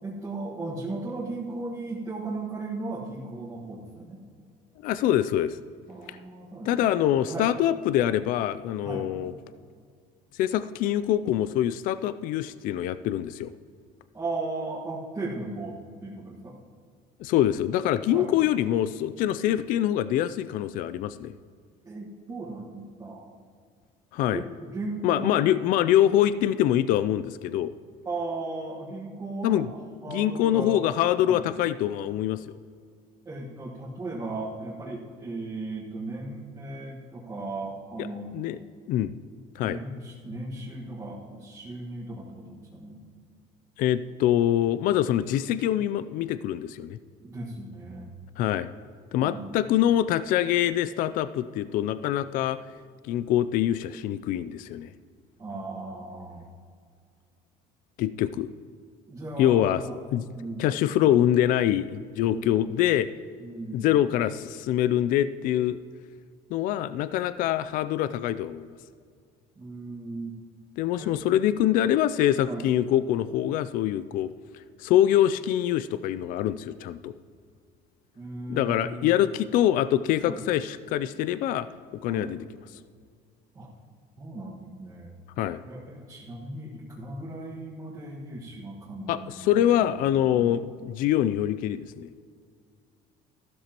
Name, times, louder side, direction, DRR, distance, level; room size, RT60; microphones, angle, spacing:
voice 1, 0.0-4.2 5.9-6.9 7.3-7.5 8.8-9.0 14.1-16.5 18.1-18.3 21.8-23.3 24.3-25.4 28.0-29.7 30.0-30.8 31.2-31.4 33.2-38.4 39.6-43.0 47.2-48.1 49.2-49.5 55.4-56.5 59.1-60.0 60.3-60.7 62.2-62.8 63.4-63.9 69.6-70.3 71.0-71.2 72.4-72.6 78.1-79.2 80.2-80.4 82.1-82.3 83.5-83.7 84.2-85.2 85.7-89.4 89.8-90.0 90.3-90.5, right 2 dB, 20° right, -6 dB, 1.5 m, -36 dB
voice 2, 4.8-5.6 6.1-6.2 6.7-9.3 10.4-13.5 17.2-21.3 24.1-24.4 25.0-27.7 29.4-29.7 30.1-32.4 38.0-38.1 38.3-38.6 38.9-39.1 39.6-39.8 43.8-47.0 48.4-48.7 49.1-52.6 53.1-54.9 58.0-58.5 59.4-59.8 60.1-60.2 60.6-63.1 63.7-65.8 66.5-68.7 70.8-74.3 74.8-77.1 78.5-81.7 82.0-82.4 85.4-85.6 89.1-92.1, left 11 dB, 60° left, 14 dB, 0.4 m, -24 dB
14.0 x 12.5 x 3.0 m, 2.1 s
cardioid pair, 135°, 16 cm